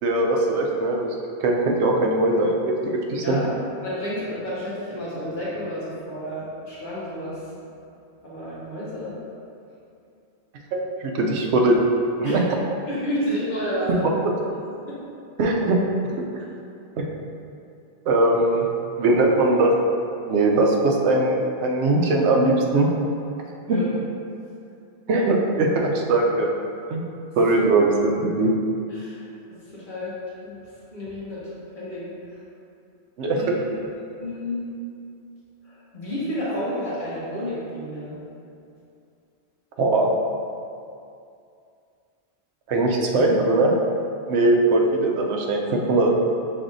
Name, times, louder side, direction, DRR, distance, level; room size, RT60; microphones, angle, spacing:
voice 1, 0.0-1.1 1.4-3.4 10.7-11.8 12.2-12.4 14.0-14.1 15.4-15.8 16.2-16.3 17.0-17.1 18.1-18.7 19.0-19.7 20.3-21.4 21.6-22.9 23.7-23.8 25.1-26.5 26.9-27.0 27.4-28.5 33.2-33.6 39.8-40.1 42.7-43.7 44.3-46.1, right 2 dB, 85° right, 0 dB, 0.9 m, -20 dB
voice 2, 3.8-7.4 8.2-9.2 12.2-12.4 12.9-14.0 14.9-15.0 23.7-23.9 28.9-29.2 29.5-30.6 30.9-32.1 33.3-33.7 34.1-34.7 35.6-38.2, equal, 50° left, -9 dB, 1.3 m, -31 dB
5.2 x 3.5 x 2.6 m, 2.5 s
omnidirectional pair, 1.1 m